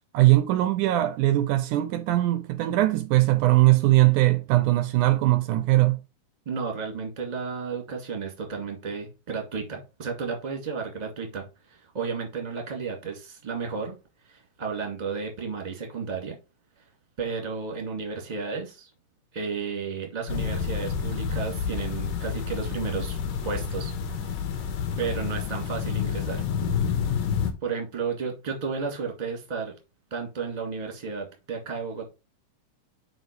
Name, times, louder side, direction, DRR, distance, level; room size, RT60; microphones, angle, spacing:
voice 1, 0.1-6.0, right 17 dB, 80° right, 2.0 m, -21 dB
voice 2, 6.4-13.9 14.2-16.4 17.2-18.9 19.3-23.2 23.4-23.9 25.0-26.4 27.6-29.7 30.1-32.1, right 5 dB, 15° right, 1.7 m, -33 dB
sound 1, 20.3-27.5, left 6 dB, 90° left, 3.0 m, -29 dB
6.2 x 4.7 x 5.3 m
omnidirectional pair, 3.8 m